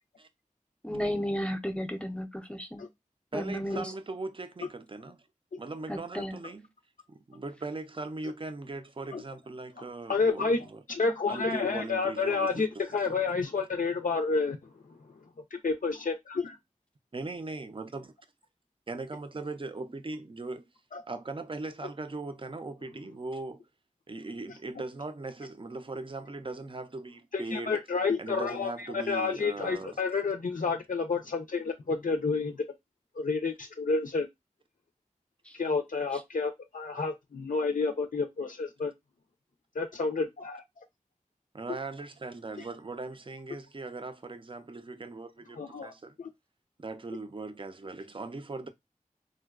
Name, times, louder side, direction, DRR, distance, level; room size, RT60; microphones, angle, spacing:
voice 1, 0.8-2.9 3.3-3.8 5.9-6.4, equal, 10° left, 0.5 m, -33 dB
voice 2, 3.3-5.3 5.6-6.7 7.1-10.8 11.3-12.8 13.1-13.2 17.1-18.1 18.9-20.7 21.1-23.7 24.1-27.8 28.2-30.0 41.5-46.2 46.8-48.7, right 3 dB, 40° right, 0.4 m, -39 dB
voice 3, 10.1-10.6 10.9-14.6 15.6-16.6 20.9-21.0 27.3-32.6 33.2-34.3 35.5-38.9 39.7-40.8 45.6-45.9 46.2-46.3, left 4 dB, 85° left, 0.4 m, -30 dB
3.7 x 2.2 x 2.2 m
wide cardioid pair, 45°, 14 cm